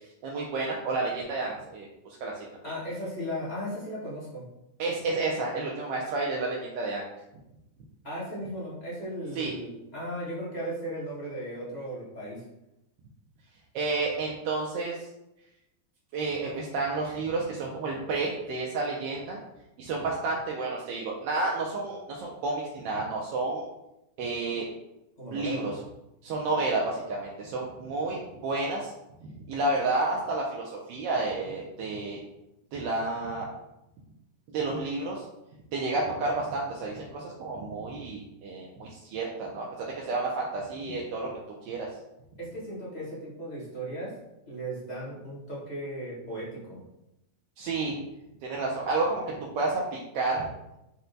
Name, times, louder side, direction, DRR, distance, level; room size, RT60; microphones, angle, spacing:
voice 1, 0.2-1.9 2.2-2.3 4.8-7.0 9.4-9.5 13.7-15.0 16.1-19.4 19.8-23.7 24.2-24.7 25.3-25.7 26.2-28.9 29.5-32.2 32.7-33.5 34.5-35.2 35.7-39.6 40.1-41.3 41.7-41.9 47.6-48.0 48.4-50.5, right 3 dB, 80° right, -2 dB, 1.2 m, -30 dB
voice 2, 2.6-4.4 8.0-12.4 25.2-25.6 42.4-44.1 44.5-46.8, equal, 25° left, -8 dB, 1.1 m, -36 dB
4.4 x 2.1 x 3.9 m, 0.90 s
omnidirectional pair, 2.0 m